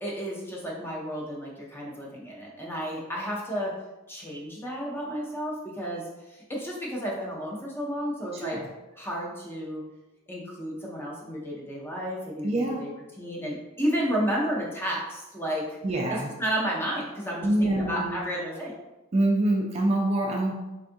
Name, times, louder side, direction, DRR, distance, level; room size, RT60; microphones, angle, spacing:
voice 1, 0.0-3.7 4.1-8.6 9.0-9.8 10.3-15.6 16.1-18.7, equal, 10° left, -4 dB, 0.6 m, -32 dB
voice 2, 12.4-12.8 15.8-16.3 17.4-18.2 19.1-20.5, right 1 dB, 30° right, 0 dB, 0.3 m, -25 dB
3.6 x 2.3 x 2.6 m, 1.0 s
head